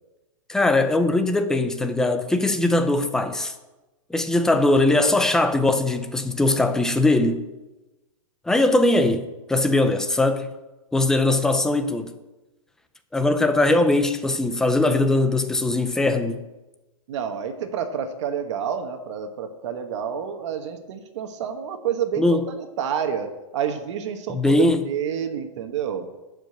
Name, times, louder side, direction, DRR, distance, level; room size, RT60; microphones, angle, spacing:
voice 1, 0.5-3.5 4.1-7.4 8.5-10.5 10.9-12.1 13.1-16.4 22.2-22.4 24.3-24.8, left 2 dB, 5° left, 0.5 m, -20 dB
voice 2, 17.1-26.1, right 8 dB, 55° right, 1.2 m, -29 dB
11.5 x 5.2 x 7.7 m
hypercardioid pair, 155°, 18 cm